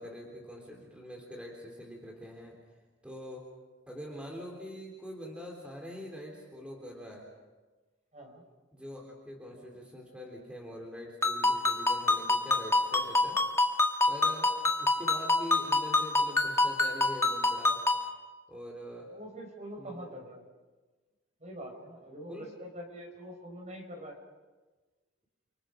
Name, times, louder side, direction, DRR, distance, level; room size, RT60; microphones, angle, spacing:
voice 1, 0.0-2.6 3.0-3.5 3.9-7.3 8.7-13.4 14.1-14.5 14.8-17.8 18.5-19.1 19.8-20.0 22.3-22.5, equal, 5° right, -1 dB, 3.5 m, -44 dB
voice 2, 8.1-8.4 19.1-20.4 21.4-24.2, equal, 35° right, 2 dB, 5.4 m, -44 dB
Ringtone, 11.2-18.1, left 2 dB, 15° left, 1.9 m, -27 dB
29.5 x 26.0 x 5.2 m, 1.3 s
head